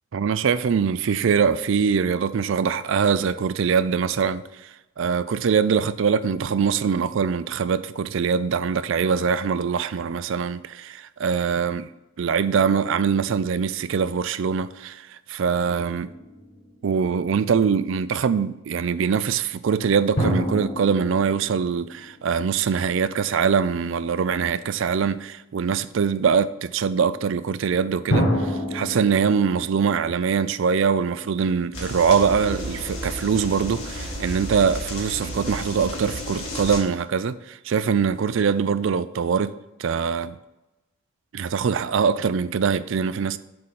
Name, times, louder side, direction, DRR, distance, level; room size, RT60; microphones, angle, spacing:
voice 1, 0.1-4.4 5.0-11.9 12.2-15.0 15.3-16.1 16.8-40.4 41.3-43.4, right 6 dB, 60° right, 0.4 m, -23 dB
sound 1, 15.5-17.2 20.2-22.9 28.1-31.1, equal, 55° left, 1.9 m, -29 dB
sound 2, 31.7-36.8, equal, 75° left, 2.3 m, -32 dB
7.7 x 3.9 x 5.7 m
head